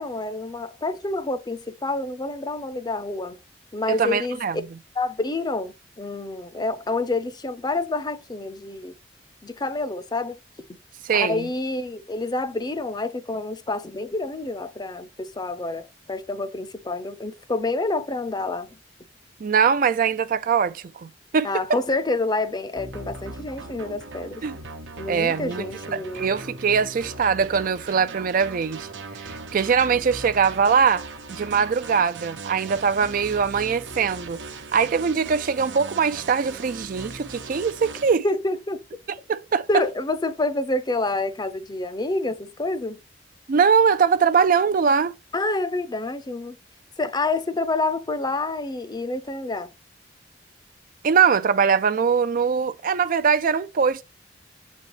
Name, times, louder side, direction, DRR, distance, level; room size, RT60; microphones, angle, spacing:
voice 1, 0.0-3.4 3.7-4.4 5.0-8.9 9.4-10.4 11.1-18.8 21.4-24.4 25.0-26.3 38.2-38.8 39.7-43.0 45.3-46.6 47.0-49.7, left 2 dB, 25° left, 0.6 m, -28 dB
voice 2, 3.9-4.6 11.0-11.5 19.4-21.8 24.4-24.6 25.1-25.6 25.9-28.9 29.2-34.4 34.7-38.3 39.3-39.7 43.5-45.1 51.0-54.0, right 6 dB, 50° right, 0.4 m, -22 dB
sound 1, 22.8-38.2, right 3 dB, 90° right, 1.0 m, -39 dB
7.9 x 4.2 x 3.0 m
head